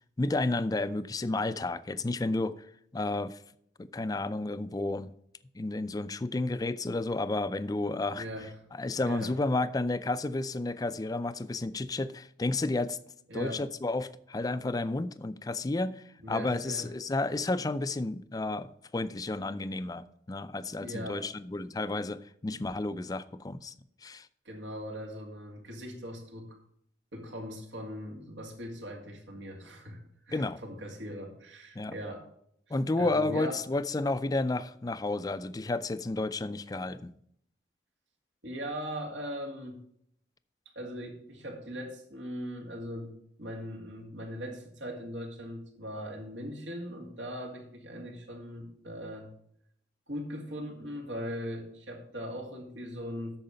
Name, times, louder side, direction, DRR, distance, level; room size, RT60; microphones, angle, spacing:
voice 1, 0.2-2.7 2.9-3.4 3.8-5.1 5.5-8.3 8.7-13.0 13.3-23.7 24.0-24.3 30.3-30.6 31.8-32.0 32.7-37.1, left 2 dB, 20° left, 0.4 m, -31 dB
voice 2, 8.1-8.5 9.1-9.3 13.3-13.6 16.2-16.9 20.8-21.3 24.4-26.6 27.1-30.0 30.2-32.3 33.0-33.6 38.4-39.8 40.8-49.3 50.1-53.4, equal, 85° right, 2.3 m, -40 dB
8.8 x 6.6 x 5.4 m
head